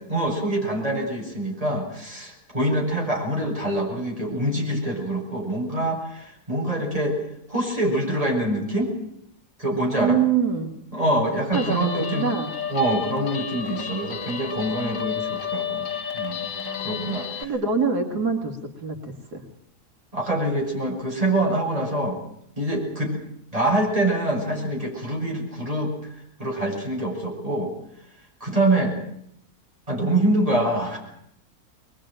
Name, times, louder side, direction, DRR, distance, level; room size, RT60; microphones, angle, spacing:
voice 1, 0.1-7.2 7.5-8.9 9.6-10.2 10.9-12.4 12.7-15.9 16.1-16.5 16.8-17.5 20.1-22.2 22.6-23.2 23.5-27.7 28.4-29.0 29.9-31.0, right 1 dB, 20° right, -1 dB, 7.7 m, -25 dB
voice 2, 9.9-10.7 11.5-12.5 16.5-17.1 17.4-19.4, right 5 dB, 85° right, 3 dB, 3.0 m, -25 dB
Guitar, 11.5-17.4, left 8 dB, 55° left, 1.9 m, -31 dB
23.0 x 22.0 x 9.1 m, 0.73 s
omnidirectional pair, 1.7 m